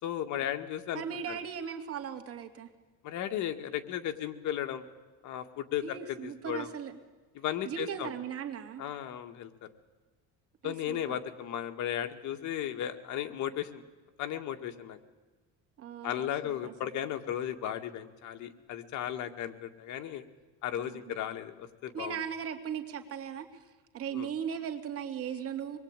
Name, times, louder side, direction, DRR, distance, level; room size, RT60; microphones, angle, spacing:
voice 1, 0.0-1.4 3.0-4.8 5.2-6.7 7.4-8.1 8.8-9.7 10.6-13.8 14.2-15.0 16.0-20.2 20.6-22.2 24.1-24.3, left 10 dB, 60° left, 7 dB, 2.0 m, -35 dB
voice 2, 0.9-2.7 5.8-6.9 7.6-8.8 10.6-11.2 15.8-16.7 20.8-21.0 21.9-23.5 23.9-25.8, right 8 dB, 45° right, 5 dB, 2.9 m, -38 dB
25.0 x 21.5 x 9.1 m, 1.2 s
cardioid pair, 130°, 33 cm